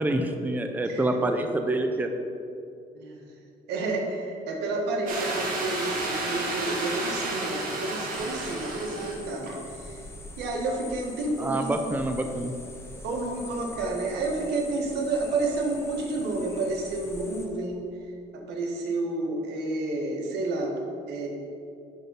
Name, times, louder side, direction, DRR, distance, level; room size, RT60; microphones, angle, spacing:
voice 1, 0.0-2.1 11.4-12.5, right 2 dB, 10° right, 5 dB, 0.5 m, -27 dB
voice 2, 2.9-3.3 3.7-10.1 10.4-11.7 13.0-17.8 18.5-20.7 21.1-21.3, right 2 dB, 80° right, 0 dB, 1.5 m, -30 dB
sound 1, 5.1-9.1 9.4-9.5, right 2 dB, 55° right, 1.9 m, -31 dB
sound 2, 8.1-17.5, left 1 dB, 15° left, 1.1 m, -44 dB
10.5 x 3.8 x 5.6 m, 2.5 s
cardioid pair, 110°, 17 cm